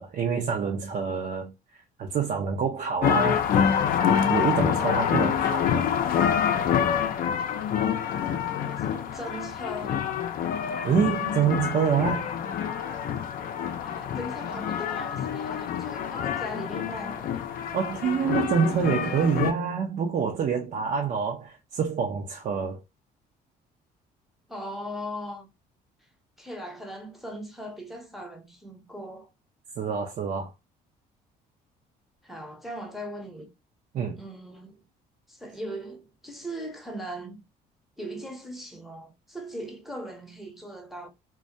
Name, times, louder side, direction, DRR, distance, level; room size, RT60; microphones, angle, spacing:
voice 1, 0.0-1.5 2.0-3.4 4.3-5.9 10.8-12.3 17.7-22.8 29.8-30.5 33.9-34.2, right 6 dB, 50° right, 0.5 m, -26 dB
sound 1, 3.0-19.5, left 8 dB, 60° left, 0.5 m, -27 dB
voice 2, 8.5-10.0 13.8-17.3 24.5-25.5 26.4-29.3 32.2-33.5 34.2-34.8 35.3-37.4 38.0-41.1, equal, ahead, 0.6 m, -39 dB
2.2 x 2.1 x 2.6 m
cardioid pair, 110°, 17 cm